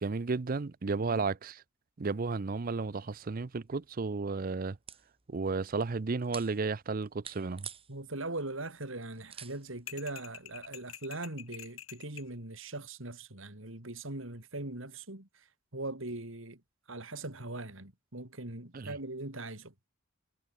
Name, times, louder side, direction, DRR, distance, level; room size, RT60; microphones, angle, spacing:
voice 1, 0.0-1.6 2.0-4.8 5.3-7.7 18.7-18.9, right 4 dB, 45° right, 0.5 m, -33 dB
sound 1, 3.6-10.8, right 8 dB, 30° right, 4.3 m, -52 dB
voice 2, 7.9-15.5 15.7-16.6 16.9-19.7, right 2 dB, 70° right, 3.6 m, -40 dB
sound 2, 9.9-12.3, left 11 dB, 85° left, 2.4 m, -47 dB
head